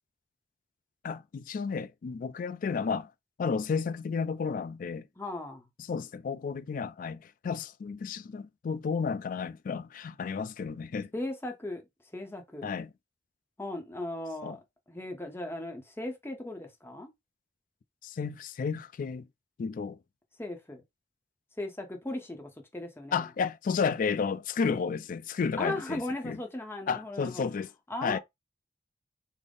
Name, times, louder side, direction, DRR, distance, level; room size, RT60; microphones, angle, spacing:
voice 1, 1.0-3.1 3.4-5.1 5.9-11.1 12.6-12.9 14.4-14.6 18.0-19.2 19.6-20.0 23.1-26.4 26.9-27.7 28.0-28.2, left 5 dB, 50° left, 0.3 m, -32 dB
voice 2, 5.2-5.7 11.1-11.9 12.1-12.7 13.6-14.6 14.9-17.1 20.4-20.8 21.6-23.3 25.6-27.4 27.9-28.2, left 1 dB, 15° left, 0.7 m, -37 dB
3.7 x 2.0 x 3.4 m
head